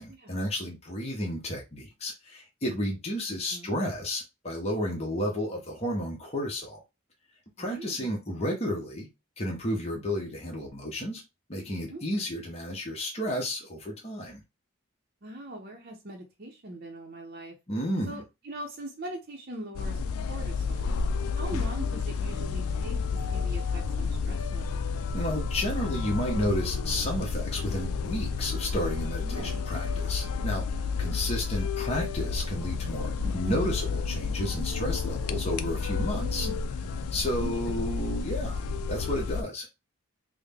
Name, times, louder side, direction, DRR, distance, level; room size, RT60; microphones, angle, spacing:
voice 1, 0.0-6.8 7.6-9.1 9.4-11.2 11.5-14.4 17.7-18.2 21.5-21.6 25.1-36.5 37.1-38.6 38.9-39.7, equal, 30° left, 0.9 m, -32 dB
voice 2, 3.3-3.8 7.6-8.1 11.9-12.0 15.2-17.6 18.1-20.0 20.3-21.0 21.4-24.9 29.2-29.6 33.2-33.7 36.1-36.5 37.4-37.7, right 1 dB, 45° right, 0.7 m, -41 dB
sound 1, 19.8-39.4, left 5 dB, 85° left, 0.4 m, -31 dB
3.6 x 2.1 x 3.5 m
head